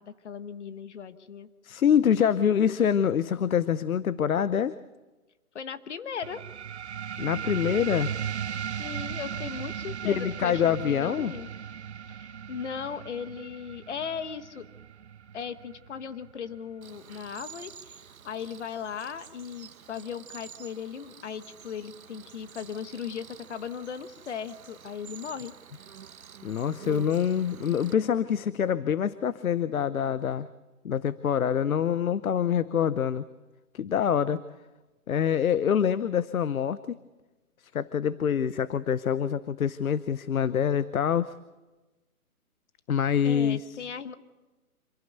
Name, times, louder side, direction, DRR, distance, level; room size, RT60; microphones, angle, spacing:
voice 1, 0.0-1.5 5.5-6.4 8.8-11.5 12.1-14.7 15.3-25.5 43.2-44.1, left 7 dB, 50° left, 11 dB, 1.5 m, -37 dB
voice 2, 1.6-4.7 7.2-8.1 10.0-11.3 26.4-30.5 30.8-33.2 33.7-34.4 35.1-37.0 37.7-41.3 42.9-43.8, left 8 dB, 70° left, 16 dB, 0.9 m, -25 dB
sound 1, 6.2-17.3, right 9 dB, 50° right, 0.8 m, -37 dB
Cricket, 16.8-27.9, right 8 dB, 65° right, 1.2 m, -48 dB
27.0 x 16.0 x 6.8 m, 1.1 s
hypercardioid pair, 160°, 44 cm